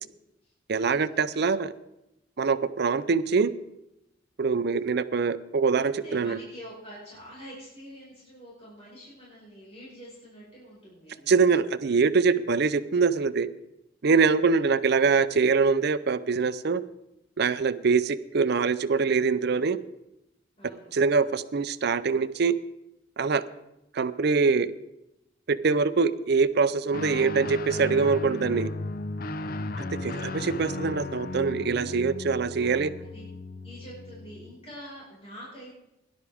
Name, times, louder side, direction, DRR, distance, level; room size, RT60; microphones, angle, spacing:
voice 1, 0.7-1.7 2.4-3.5 4.4-6.4 11.3-13.5 14.0-16.8 17.4-19.8 20.9-22.5 23.2-23.4 23.9-24.7 25.5-28.7 30.0-32.9, right 5 dB, 60° right, 14 dB, 0.5 m, -24 dB
voice 2, 5.9-11.3 20.6-20.9 29.4-29.9 32.5-33.2 33.6-35.7, equal, 35° left, -7 dB, 5.3 m, -46 dB
Guitar, 26.9-34.6, left 2 dB, 50° left, 0.6 m, -35 dB
17.5 x 11.0 x 3.5 m, 0.87 s
head